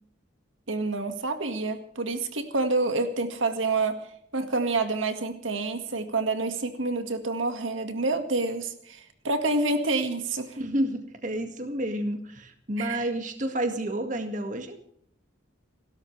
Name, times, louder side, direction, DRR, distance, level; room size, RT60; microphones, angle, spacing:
voice 1, 0.7-4.0 4.3-10.6 12.8-13.1, right 3 dB, 80° right, 7 dB, 1.9 m, -28 dB
voice 2, 10.6-14.8, right 1 dB, 40° right, 6 dB, 2.0 m, -30 dB
29.5 x 13.0 x 3.3 m, 0.67 s
head